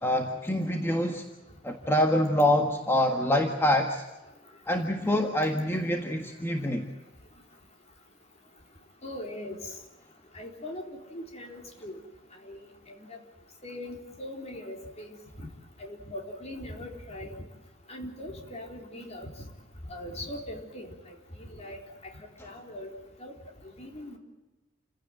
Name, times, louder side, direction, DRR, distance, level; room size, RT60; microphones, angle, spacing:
voice 1, 0.0-1.2 1.6-4.0 4.7-6.9, left 1 dB, 15° left, 3 dB, 1.6 m, -25 dB
voice 2, 9.0-9.6 10.3-12.0 12.4-12.6 12.9-13.2 13.6-15.5 15.8-17.4 17.9-19.3 19.8-22.9 23.2-23.3 23.6-24.2, left 1 dB, 35° left, 2 dB, 4.1 m, -41 dB
29.0 x 16.5 x 9.2 m, 1.1 s
head